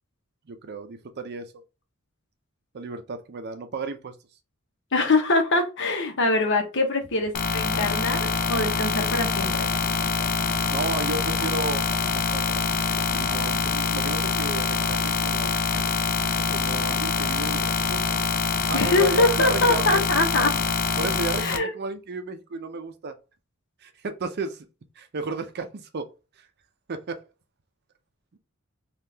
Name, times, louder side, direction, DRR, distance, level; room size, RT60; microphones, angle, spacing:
voice 1, 0.5-1.5 2.7-4.1 10.7-11.8 12.1-12.8 13.1-15.6 16.5-18.0 18.7-20.0 21.0-23.2 23.8-24.7 25.0-26.1 26.9-27.2, right 4 dB, 50° right, 0.5 m, -33 dB
voice 2, 4.9-9.7 18.7-20.5 21.4-21.7, left 2 dB, 60° left, 0.9 m, -23 dB
sound 1, 7.3-21.6, left 5 dB, 45° left, 0.4 m, -25 dB
3.6 x 2.4 x 2.8 m
head